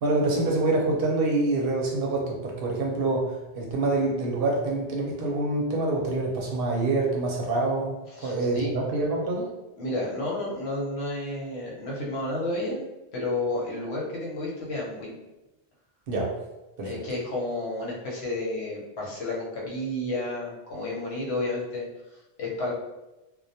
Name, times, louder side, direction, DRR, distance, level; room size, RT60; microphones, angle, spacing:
voice 1, 0.0-9.5 16.1-16.3 16.8-17.0, right 2 dB, 65° right, -1 dB, 0.7 m, -26 dB
voice 2, 8.2-8.7 9.8-15.2 16.8-21.9 22.4-22.7, left 2 dB, 80° left, -3 dB, 1.0 m, -31 dB
2.2 x 2.1 x 2.6 m, 1.0 s
omnidirectional pair, 1.1 m